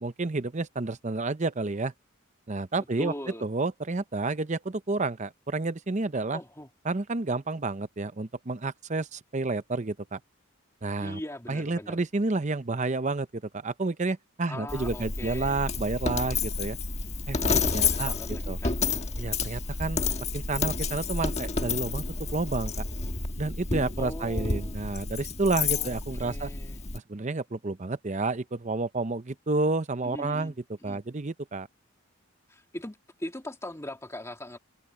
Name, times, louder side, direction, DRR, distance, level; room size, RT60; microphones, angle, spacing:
voice 1, 0.0-1.9 2.5-3.1 3.4-6.4 6.8-10.2 10.8-11.2 11.5-16.8 17.3-18.1 18.5-18.6 19.2-20.0 20.3-22.8 23.4-26.5 26.9-30.5 30.8-31.7, right 3 dB, 35° right, 0.7 m, -30 dB
voice 2, 3.0-3.5 6.3-6.7 11.0-12.0 14.5-15.7 17.6-18.8 24.0-24.8 25.7-26.8 30.0-30.5 30.8-31.0 32.5-34.6, left 1 dB, 15° left, 2.3 m, -40 dB
Coin (dropping), 14.7-27.0, left 4 dB, 30° left, 1.4 m, -30 dB
open air
head